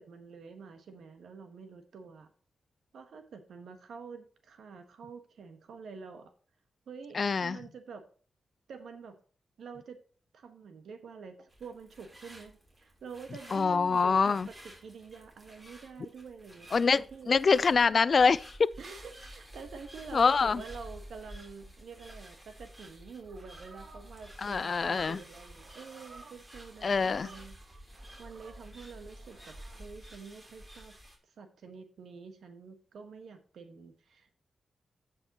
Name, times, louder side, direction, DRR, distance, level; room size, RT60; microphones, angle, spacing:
voice 1, 0.0-2.3 2.9-6.3 6.9-8.0 8.7-9.2 9.6-10.0 10.3-17.3 18.8-27.8 28.2-31.0 31.3-34.3, right 5 dB, 85° right, 1.3 m, -47 dB
voice 2, 7.1-7.6 13.5-14.5 16.7-18.7 20.1-20.6 24.4-25.2 26.8-27.3, left 5 dB, 55° left, 0.3 m, -25 dB
sound 1, 11.5-31.2, equal, 25° right, 3.4 m, -51 dB
sound 2, 22.9-29.8, right 4 dB, 70° right, 1.2 m, -55 dB
15.5 x 5.4 x 2.9 m
cardioid pair, 75°, 0 cm